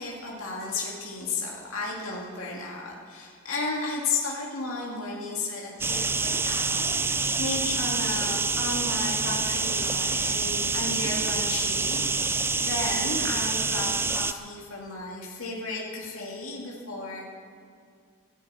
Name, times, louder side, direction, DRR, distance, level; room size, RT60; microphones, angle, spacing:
voice 1, 0.0-6.9 7.4-17.3, left 3 dB, 75° left, -3 dB, 2.5 m, -33 dB
sound 1, 5.8-14.3, right 4 dB, 10° right, 0.3 m, -27 dB
12.5 x 12.0 x 8.7 m, 2.3 s
head